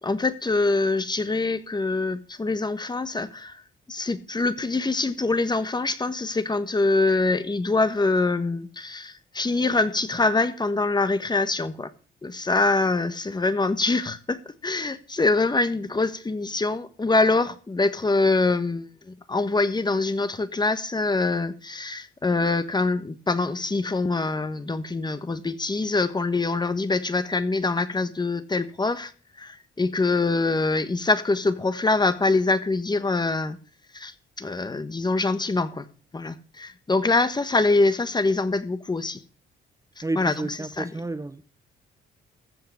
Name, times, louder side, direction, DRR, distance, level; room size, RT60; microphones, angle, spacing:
voice 1, 0.0-3.6 3.9-11.9 12.2-29.1 29.4-33.6 33.9-35.9 36.1-39.2 40.0-40.9, left 3 dB, 20° left, 1.3 m, -24 dB
voice 2, 40.0-41.5, right 2 dB, 15° right, 1.0 m, -31 dB
15.0 x 5.7 x 8.3 m
cardioid pair, 90°, 20 cm